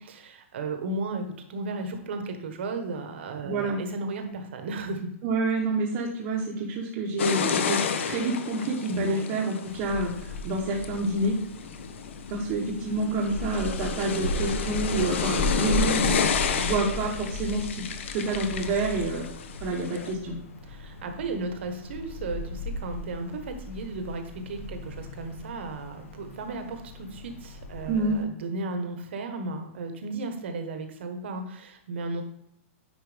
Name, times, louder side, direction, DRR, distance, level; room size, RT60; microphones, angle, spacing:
voice 1, 0.0-5.1 8.9-9.3 20.7-32.2, right 3 dB, 55° right, 6 dB, 1.3 m, -35 dB
voice 2, 3.4-3.8 5.2-7.8 8.0-11.4 12.3-16.1 16.6-17.8 18.1-19.3 19.6-20.4 27.9-28.2, right 2 dB, 25° right, -4 dB, 1.0 m, -28 dB
sound 1, 7.2-20.1, left 6 dB, 60° left, 0.8 m, -31 dB
Wind, 9.6-28.2, left 2 dB, 80° left, 1.3 m, -36 dB
9.7 x 4.7 x 3.4 m, 0.78 s
hypercardioid pair, 175°, 7 cm